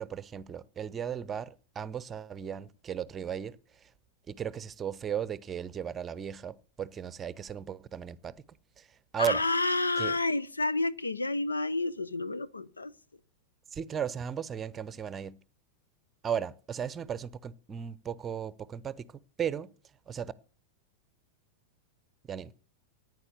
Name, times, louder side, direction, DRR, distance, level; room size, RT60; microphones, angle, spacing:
voice 1, 0.0-3.9 4.3-8.4 8.8-9.4 10.0-10.2 13.7-15.4 16.2-19.7 20.1-20.3 22.3-22.5, right 8 dB, 20° right, 0.7 m, -36 dB
voice 2, 9.2-12.9, left 2 dB, 80° left, 0.6 m, -29 dB
14.0 x 9.6 x 6.8 m
figure-of-eight pair, 90°, 0 cm